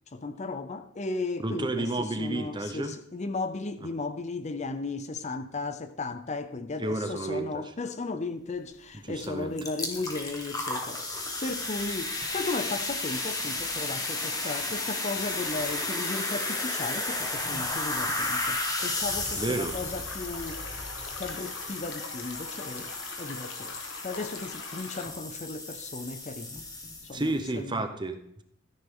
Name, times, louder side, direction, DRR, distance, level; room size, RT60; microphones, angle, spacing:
voice 1, 0.1-11.0 11.4-20.7 21.2-23.8 24.0-26.6 27.0-27.9, left 3 dB, 35° left, 0.6 m, -35 dB
voice 2, 1.4-3.0 6.8-7.7 9.1-9.5 19.4-19.8 27.1-28.4, right 2 dB, 25° right, 1.0 m, -31 dB
sound 1, 9.2-9.3 9.6-27.3, left 2 dB, 20° left, 1.7 m, -33 dB
sound 2, 18.7-25.1, left 4 dB, 70° left, 1.6 m, -42 dB
sound 3, 18.8-21.8, equal, ahead, 2.1 m, -45 dB
14.0 x 10.0 x 3.8 m
head